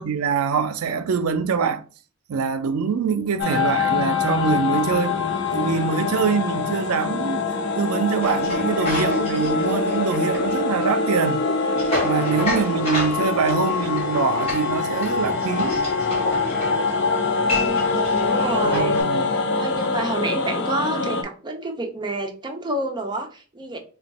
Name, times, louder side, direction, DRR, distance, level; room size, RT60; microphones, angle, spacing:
voice 1, 0.0-1.8 2.3-5.2 5.5-7.5 7.8-11.4 12.0-15.8 18.6-19.3, right 6 dB, 90° right, 0.4 m, -24 dB
sound 1, 3.4-21.2, left 4 dB, 55° left, 0.5 m, -24 dB
sound 2, 8.2-19.0, left 2 dB, 30° left, 1.7 m, -31 dB
voice 2, 17.4-23.8, right 2 dB, 20° right, 0.6 m, -29 dB
3.4 x 2.3 x 4.0 m
head